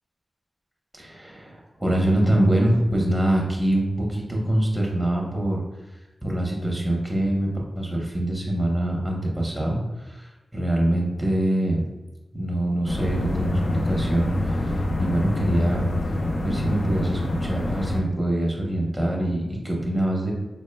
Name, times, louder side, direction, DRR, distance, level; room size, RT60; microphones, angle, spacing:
voice 1, 0.9-5.6 6.2-7.5 7.8-11.9 12.3-15.8 16.4-20.3, right 1 dB, 5° right, -1 dB, 0.7 m, -24 dB
sound 1, 12.9-18.0, left 1 dB, 70° left, 0.4 m, -26 dB
4.2 x 2.1 x 3.2 m, 1.1 s
wide cardioid pair, 105°, 0 cm